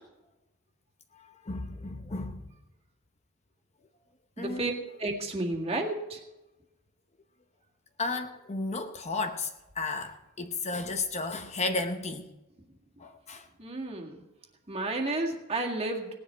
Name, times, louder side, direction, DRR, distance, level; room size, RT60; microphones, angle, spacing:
voice 1, 1.1-2.4 4.4-4.7 8.0-12.3 13.0-13.5, left 3 dB, 30° left, 0.8 m, -33 dB
voice 2, 4.4-4.7 5.0-6.2 13.6-14.2 14.7-16.1, right 2 dB, 30° right, 1.9 m, -31 dB
18.0 x 10.5 x 4.5 m
head